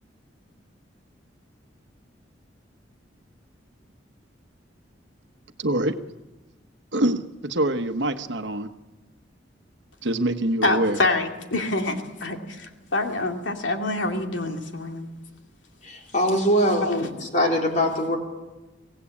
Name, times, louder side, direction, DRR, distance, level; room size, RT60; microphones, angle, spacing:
voice 1, 5.6-6.0 6.9-8.7 10.0-11.0, right 1 dB, 70° right, 1.2 m, -25 dB
voice 2, 10.6-15.1 16.8-17.1, left 2 dB, 85° left, 2.6 m, -26 dB
voice 3, 15.8-16.9 17.3-18.2, equal, 45° left, 4.0 m, -22 dB
24.0 x 17.0 x 8.6 m
head